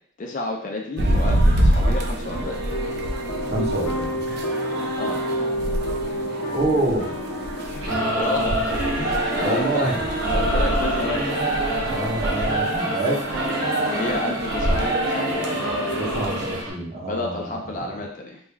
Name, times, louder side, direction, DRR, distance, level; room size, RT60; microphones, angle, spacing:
voice 1, 0.2-2.6 5.0-5.2 6.0-6.2 7.7-9.9 10.3-11.3 14.0-15.6 17.1-18.4, left 2 dB, 40° left, 1 dB, 0.4 m, -30 dB
sound 1, 1.0-16.6, right 1 dB, 50° right, 0.4 m, -27 dB
sound 2, 2.3-16.4, equal, 65° left, 0.8 m, -31 dB
voice 2, 3.5-4.2 6.5-7.1 9.4-10.0 11.8-13.4 16.0-18.0, right 2 dB, 35° right, -4 dB, 0.8 m, -27 dB
Singing / Musical instrument, 7.8-16.7, right 1 dB, 75° right, 0.9 m, -26 dB
3.1 x 2.3 x 3.4 m, 0.62 s
head